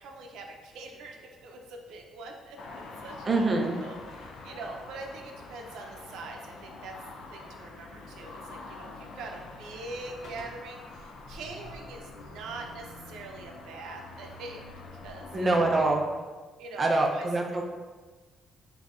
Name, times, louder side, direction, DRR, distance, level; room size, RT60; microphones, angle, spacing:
voice 1, 0.0-3.5 3.8-7.0 7.3-14.7 15.0-15.7 16.6-17.3, right 3 dB, 80° right, 2 dB, 0.6 m, -43 dB
sound 1, 2.6-16.0, left 3 dB, 55° left, 0.4 m, -45 dB
voice 2, 3.3-3.8 15.3-16.0 16.8-17.6, right 2 dB, 20° right, 1 dB, 0.4 m, -25 dB
6.1 x 2.7 x 2.4 m, 1.3 s
cardioid pair, 180°, 0 cm